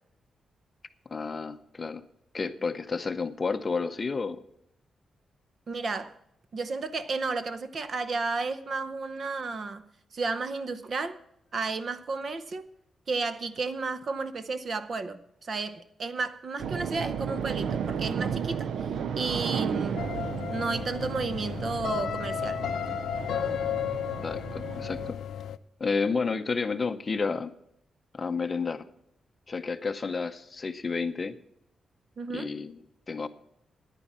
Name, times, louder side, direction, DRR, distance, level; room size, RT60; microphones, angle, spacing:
voice 1, 1.1-2.0 2.3-4.4 24.2-25.2 25.8-27.5 28.1-28.9 29.5-31.3 32.3-33.3, left 4 dB, 25° left, 0.6 m, -31 dB
voice 2, 5.7-6.1 6.5-9.8 10.1-11.2 11.5-12.6 13.1-18.7 19.2-20.1 20.5-22.6 32.2-32.5, right 4 dB, 40° right, 0.8 m, -32 dB
sound 1, 16.6-25.1, right 7 dB, 75° right, 0.5 m, -34 dB
sound 2, 20.0-25.6, left 9 dB, 80° left, 0.5 m, -33 dB
9.9 x 9.7 x 7.2 m
wide cardioid pair, 170°, 0 cm